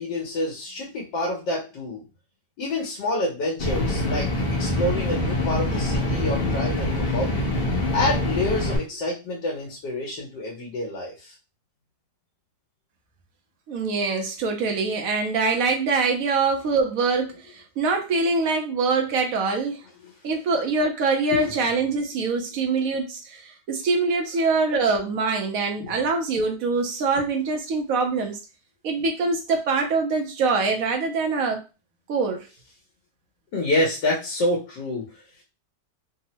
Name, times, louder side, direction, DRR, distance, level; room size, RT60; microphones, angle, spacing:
voice 1, 0.0-2.0 2.6-7.5 7.9-11.3 20.0-20.2 21.3-21.6 25.8-26.0 27.1-27.2 33.5-35.4, left 1 dB, 80° left, -1 dB, 1.4 m, -28 dB
sound 1, 3.6-8.8, left 1 dB, 55° left, 0.7 m, -25 dB
voice 2, 13.7-19.8 20.2-28.4 28.8-31.6 32.1-32.5, right 4 dB, 70° right, 3 dB, 0.8 m, -24 dB
3.5 x 2.0 x 2.8 m, 0.29 s
omnidirectional pair, 1.9 m